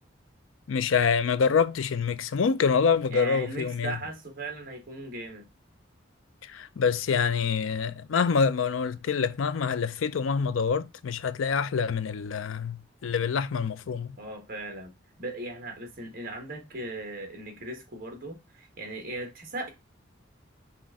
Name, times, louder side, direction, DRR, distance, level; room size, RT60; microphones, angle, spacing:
voice 1, 0.7-3.9 6.5-12.8 13.0-14.2, left 6 dB, 85° left, 0.4 m, -26 dB
voice 2, 3.1-5.4 14.2-14.9 15.2-19.7, right 2 dB, 45° right, 1.4 m, -38 dB
5.7 x 2.6 x 3.6 m
head